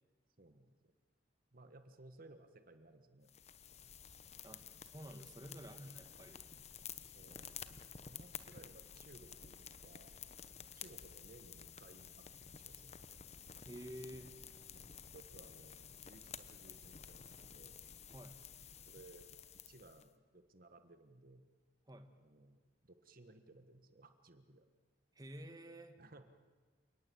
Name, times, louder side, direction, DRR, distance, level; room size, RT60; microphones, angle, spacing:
voice 1, 0.4-0.9 1.5-3.3 5.4-6.1 7.1-7.8 8.1-10.1 10.7-13.3 14.7-17.9 18.9-19.3 19.7-21.5 22.2-24.7 26.0-26.2, right 2 dB, 55° right, 9 dB, 1.5 m, -60 dB
sound 1, 3.3-20.1, left 8 dB, 40° left, 1.0 m, -53 dB
voice 2, 4.4-6.4 13.6-14.3 18.1-18.4 21.9-22.1 25.1-26.0, equal, 20° right, 6 dB, 1.6 m, -51 dB
28.5 x 19.0 x 8.5 m, 1.4 s
head